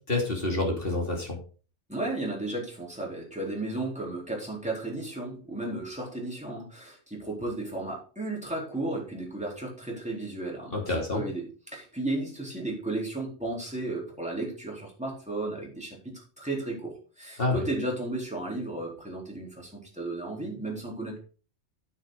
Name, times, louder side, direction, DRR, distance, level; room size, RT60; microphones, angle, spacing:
voice 1, 0.1-1.4 10.7-11.2 17.4-17.6, left 2 dB, 45° left, 0 dB, 3.1 m, -28 dB
voice 2, 1.9-21.2, right 2 dB, 5° right, -4 dB, 4.0 m, -34 dB
9.5 x 8.0 x 3.9 m, 0.38 s
omnidirectional pair, 1.3 m